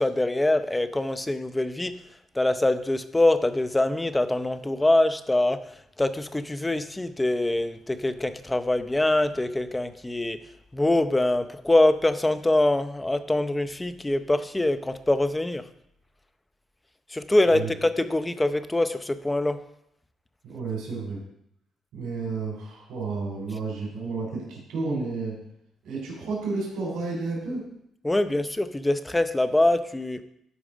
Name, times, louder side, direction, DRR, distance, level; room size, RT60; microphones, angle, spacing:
voice 1, 0.0-1.9 2.3-5.6 6.0-10.4 10.7-15.6 17.1-19.6 28.0-30.2, left 1 dB, 15° left, 11 dB, 0.7 m, -24 dB
voice 2, 20.4-21.2 21.9-25.4 25.8-27.6, right 4 dB, 80° right, -3 dB, 3.8 m, -31 dB
12.5 x 4.8 x 5.0 m, 0.75 s
cardioid pair, 90°, 0 cm